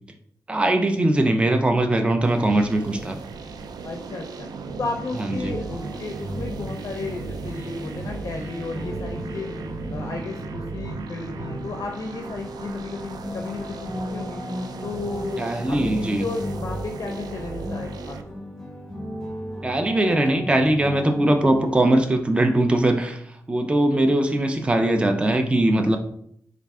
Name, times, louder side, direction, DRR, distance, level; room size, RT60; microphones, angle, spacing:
voice 1, 0.5-3.2 5.2-5.6 15.4-16.3 19.6-26.0, right 1 dB, 15° right, 5 dB, 0.4 m, -21 dB
sound 1, 2.2-18.2, right 4 dB, 80° right, 0.4 m, -36 dB
voice 2, 3.8-4.5 4.8-9.5 9.9-14.4 14.8-18.4, left 3 dB, 50° left, 3 dB, 0.5 m, -34 dB
sound 2, 5.5-22.1, left 1 dB, 5° left, 0.9 m, -36 dB
4.4 x 2.4 x 3.5 m, 0.66 s
wide cardioid pair, 100°, 7 cm